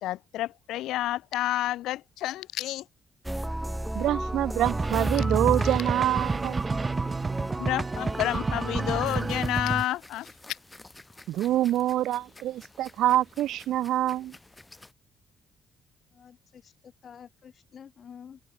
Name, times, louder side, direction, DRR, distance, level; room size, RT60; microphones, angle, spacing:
voice 1, 0.0-2.8 7.6-10.3, left 15 dB, 90° left, 1.7 m, -30 dB
sound 1, 3.2-9.5, right 1 dB, 5° right, 1.6 m, -33 dB
voice 2, 4.0-6.6 11.3-14.4, right 13 dB, 80° right, 0.4 m, -26 dB
sound 2, 4.6-9.8, right 4 dB, 30° right, 0.6 m, -30 dB
sound 3, 9.0-14.9, left 2 dB, 15° left, 5.3 m, -52 dB
voice 3, 16.1-18.4, left 7 dB, 55° left, 4.5 m, -49 dB
cardioid pair, 90°, 0 cm